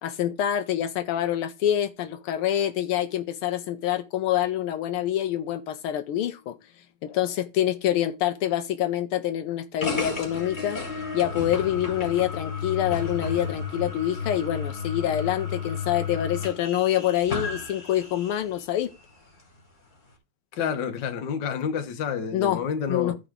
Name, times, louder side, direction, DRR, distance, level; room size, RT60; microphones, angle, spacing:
voice 1, 0.0-6.5 7.0-18.9 22.3-22.6 22.9-23.1, left 11 dB, 80° left, 1.5 m, -26 dB
sound 1, 9.8-18.5, left 5 dB, 20° left, 2.0 m, -33 dB
voice 2, 20.5-23.2, left 7 dB, 60° left, 1.5 m, -29 dB
14.0 x 5.0 x 3.5 m
omnidirectional pair, 2.4 m